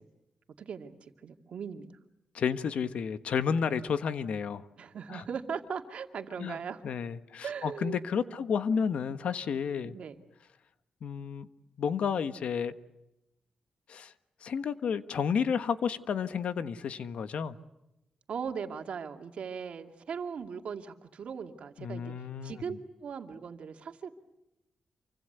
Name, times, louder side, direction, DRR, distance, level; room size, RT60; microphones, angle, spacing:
voice 1, 0.6-1.9 4.8-6.8 7.4-8.0 8.3-8.4 9.8-10.2 18.3-24.1, right 6 dB, 70° right, 5 dB, 2.4 m, -39 dB
voice 2, 2.3-4.7 5.1-5.2 6.4-6.5 6.8-10.0 11.0-11.5 11.8-12.7 13.9-14.1 14.4-17.6 21.8-22.6, left 6 dB, 75° left, 11 dB, 1.3 m, -31 dB
28.0 x 25.0 x 8.1 m, 0.93 s
cardioid pair, 85°, 2 cm